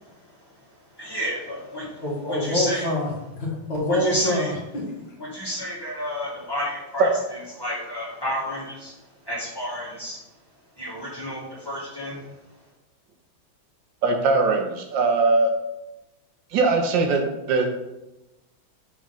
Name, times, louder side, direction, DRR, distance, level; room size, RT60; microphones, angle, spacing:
voice 1, 0.0-2.9 3.9-4.5 5.2-10.2 10.8-12.3, equal, 10° left, -7 dB, 1.8 m, -31 dB
voice 2, 2.0-4.9, left 1 dB, 65° left, -4 dB, 2.3 m, -26 dB
voice 3, 14.0-15.5 16.5-17.7, right 3 dB, 70° right, 3 dB, 1.4 m, -20 dB
4.9 x 3.5 x 5.6 m, 0.97 s
omnidirectional pair, 2.2 m